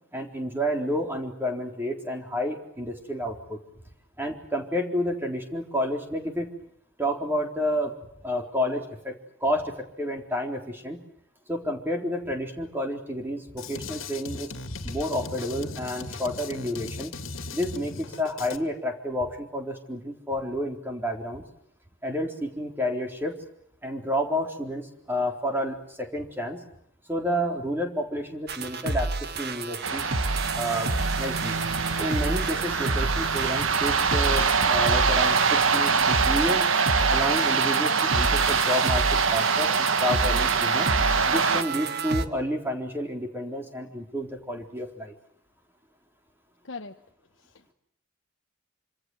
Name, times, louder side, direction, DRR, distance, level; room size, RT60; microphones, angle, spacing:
voice 1, 0.1-3.6 4.2-6.5 7.0-8.0 8.2-11.0 11.5-14.5 14.8-17.2 17.5-21.4 22.0-23.4 23.8-26.6 27.1-30.0 30.5-30.9 31.2-31.6 32.0-36.7 37.1-39.0 39.3-40.9 41.3-45.1, equal, 10° right, 2 dB, 4.0 m, -30 dB
Drum kit, 13.6-18.6, left 3 dB, 85° left, 2.2 m, -37 dB
sound 1, 28.5-42.3, right 3 dB, 50° right, 1.6 m, -30 dB
sound 2, 29.8-41.6, right 5 dB, 85° right, 1.6 m, -24 dB
voice 2, 46.6-47.0 47.4-47.7, left 4 dB, 65° left, 4 dB, 1.2 m, -40 dB
26.5 x 26.5 x 8.0 m, 0.71 s
head